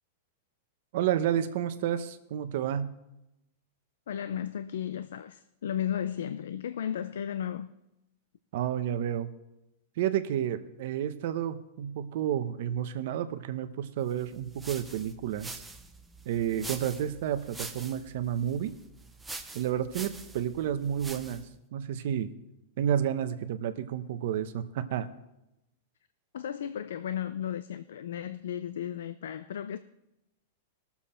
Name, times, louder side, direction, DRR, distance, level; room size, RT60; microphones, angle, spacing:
voice 1, 0.9-2.9 8.5-9.3 10.0-15.6 16.2-18.7 19.5-21.4 21.7-22.3 22.8-25.1, right 10 dB, 50° right, 0.8 m, -30 dB
voice 2, 4.1-7.7 26.3-29.8, left 9 dB, 85° left, 0.5 m, -34 dB
sound 1, 14.2-21.5, right 3 dB, 5° right, 0.6 m, -45 dB
20.0 x 7.1 x 4.3 m
supercardioid pair, 170°, 0 cm